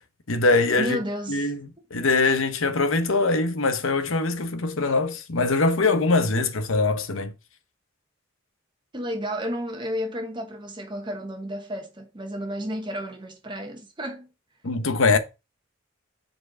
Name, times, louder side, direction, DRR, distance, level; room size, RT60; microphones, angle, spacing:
voice 1, 0.3-1.0 1.3-7.3 14.6-15.2, left 3 dB, 70° left, 0.9 m, -22 dB
voice 2, 0.8-1.5 8.9-14.3, equal, 20° right, 1.2 m, -32 dB
5.2 x 4.5 x 6.2 m
head